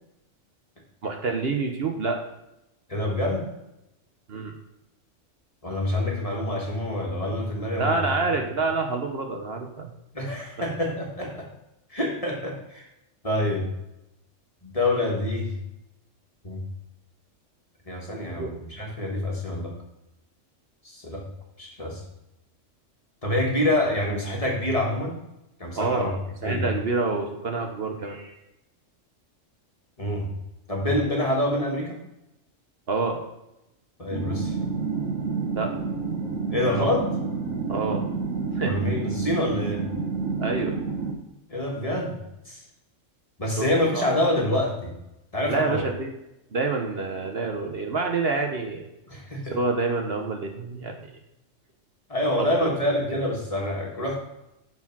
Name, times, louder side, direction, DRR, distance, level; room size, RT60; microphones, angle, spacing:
voice 1, 1.0-2.2 4.3-4.5 7.8-9.9 18.4-18.5 25.8-26.1 26.4-28.3 32.9-33.2 35.5-35.7 37.7-38.0 38.6-38.7 40.4-40.8 43.6-43.7 43.9-44.1 45.5-46.1 46.5-48.8 49.5-50.9 52.4-52.5 53.1-53.2, right 3 dB, 55° right, 3 dB, 1.1 m, -27 dB
voice 2, 2.9-3.5 5.6-8.0 10.1-11.5 11.9-12.9 13.2-13.7 14.6-15.5 16.4-16.6 17.9-19.7 20.8-21.2 21.6-22.0 23.2-25.2 25.6-26.1 26.4-26.7 30.0-30.3 30.7-32.0 34.0-34.5 36.5-37.1 38.6-39.8 41.5-42.2 42.5-42.6 43.4-44.9 45.3-45.8 49.1-49.6 52.1-54.2, left 1 dB, 30° left, -1 dB, 1.8 m, -26 dB
sound 1, 34.1-41.1, right 4 dB, 90° right, 1.7 m, -29 dB
9.4 x 4.5 x 6.1 m, 0.89 s
omnidirectional pair, 1.3 m